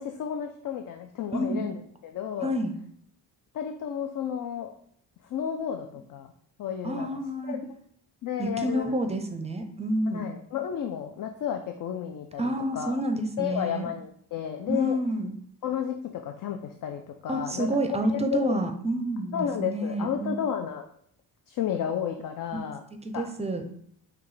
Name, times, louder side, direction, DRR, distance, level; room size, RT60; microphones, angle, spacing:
voice 1, 0.0-2.5 3.5-4.7 5.3-6.3 6.6-7.1 7.5-7.7 8.2-8.9 10.1-12.4 12.7-13.0 13.4-15.0 15.6-17.7 18.1-18.6 19.3-20.8 21.5-22.8 23.1-23.3, left 9 dB, 55° left, 5 dB, 0.5 m, -32 dB
voice 2, 1.3-1.6 2.4-2.7 6.8-7.6 8.4-10.3 12.4-13.9 14.7-15.3 17.3-20.5 23.0-23.6, right 1 dB, 15° right, 6 dB, 0.5 m, -29 dB
5.9 x 2.3 x 3.2 m, 0.66 s
cardioid pair, 90°, 40 cm